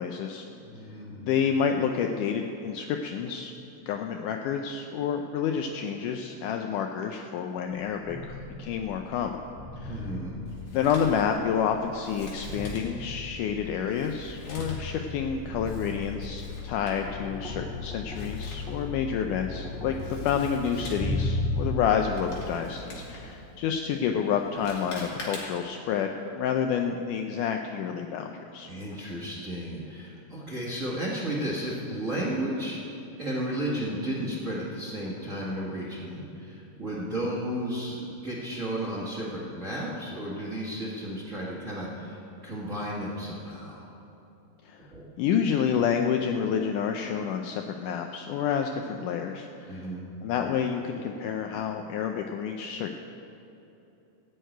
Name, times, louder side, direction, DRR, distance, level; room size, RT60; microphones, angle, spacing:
voice 1, 0.0-0.5 1.2-3.5 3.9-8.3 8.6-9.4 9.8-10.1 10.7-28.7 44.6-44.8 45.2-49.8 50.2-52.9, left 7 dB, 80° left, 4 dB, 2.0 m, -29 dB
voice 2, 0.6-1.3 9.8-10.4 28.6-32.8 33.2-43.9 44.9-45.1 49.6-50.1, right 1 dB, 35° right, -4 dB, 1.4 m, -33 dB
sound 1, 8.0-21.8, left 2 dB, ahead, 2.3 m, -36 dB
Male speech man speaking, 10.5-25.8, left 1 dB, 55° left, 3.2 m, -45 dB
14.5 x 6.6 x 9.0 m, 2.9 s
omnidirectional pair, 3.9 m